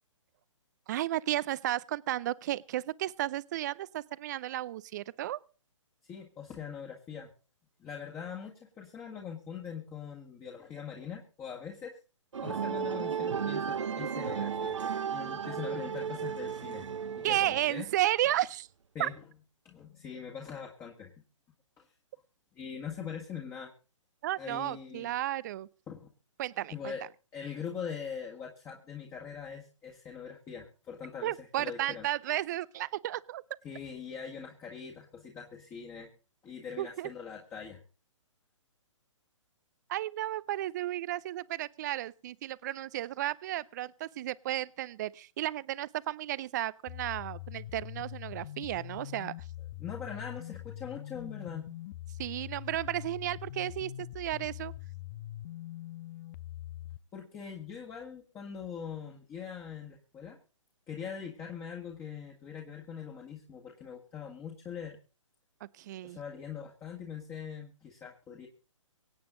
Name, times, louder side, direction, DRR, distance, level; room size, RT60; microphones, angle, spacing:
voice 1, 0.9-5.4 17.2-18.7 19.0-19.1 24.2-25.7 26.4-26.9 31.2-33.4 36.8-37.1 39.9-49.3 52.2-54.7 65.6-66.2, right 14 dB, 35° right, 20 dB, 0.6 m, -33 dB
voice 2, 6.1-7.3 7.8-12.0 12.4-14.8 15.1-16.9 17.2-17.9 18.9-19.1 19.7-21.1 21.8-21.9 22.6-23.7 24.4-25.1 25.9-26.1 26.7-27.0 27.3-32.0 33.6-36.1 36.4-37.8 49.8-51.7 57.1-60.4 60.9-65.0 66.0-68.5, left 7 dB, 15° left, 0 dB, 1.8 m, -42 dB
sound 1, 12.3-17.9, right 7 dB, 65° right, 0.9 m, -34 dB
sound 2, 46.9-57.0, left 13 dB, 30° left, 0.6 m, -43 dB
24.5 x 8.7 x 3.9 m, 0.35 s
figure-of-eight pair, 130°, 17 cm